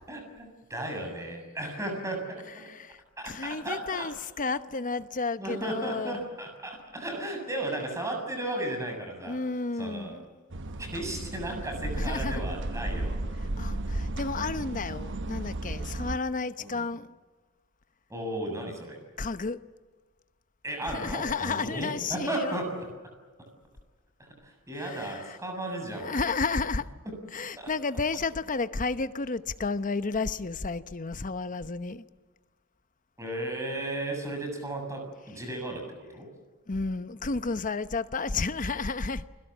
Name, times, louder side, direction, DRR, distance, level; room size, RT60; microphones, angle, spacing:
voice 1, 0.1-2.7 3.2-4.1 5.4-9.4 9.8-10.2 10.8-13.1 16.6-16.9 18.1-19.0 20.6-22.8 24.2-26.2 27.0-27.2 27.6-27.7 33.2-35.9 36.1-36.3, right 1 dB, 15° right, 7.3 m, -35 dB
voice 2, 2.6-6.2 9.2-10.2 11.9-12.5 13.6-17.1 19.2-19.6 20.9-22.6 24.8-25.4 26.0-26.9 27.3-32.1 36.7-39.3, left 4 dB, 40° left, 0.9 m, -32 dB
sound 1, 10.5-16.2, right 1 dB, 60° right, 1.0 m, -34 dB
29.5 x 22.0 x 7.4 m
head